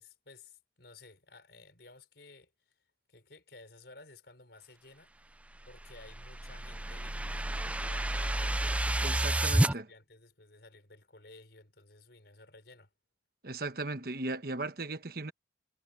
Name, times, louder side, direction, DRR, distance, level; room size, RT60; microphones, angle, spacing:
voice 1, 0.0-2.8 3.1-5.1 5.7-8.6 9.1-12.9, left 3 dB, 70° left, 4.5 m, -55 dB
sound 1, 5.7-9.7, right 1 dB, 10° right, 0.4 m, -30 dB
voice 2, 9.0-9.9 13.4-15.3, right 2 dB, 55° right, 1.2 m, -37 dB
head